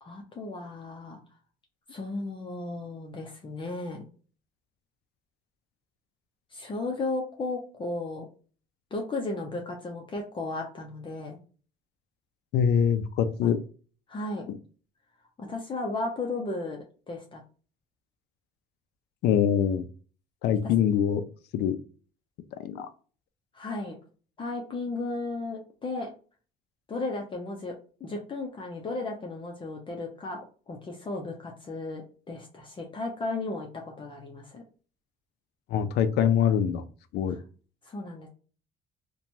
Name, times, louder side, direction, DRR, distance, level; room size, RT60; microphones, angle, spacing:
voice 1, 0.0-1.2 1.9-4.0 6.5-8.3 8.9-11.4 13.4-13.5 14.1-14.5 15.4-17.4 23.5-24.0 24.4-26.1 26.9-30.4 30.7-34.6 37.3-37.4 37.8-38.3, left 2 dB, 30° left, 1 dB, 0.6 m, -35 dB
voice 2, 12.5-13.6 14.5-14.6 19.2-19.9 20.4-21.2 21.5-21.8 22.6-22.9 35.7-36.8 37.1-37.4, left 8 dB, 75° left, 10 dB, 0.4 m, -24 dB
2.9 x 2.2 x 2.6 m, 0.38 s
cardioid pair, 110°, 17 cm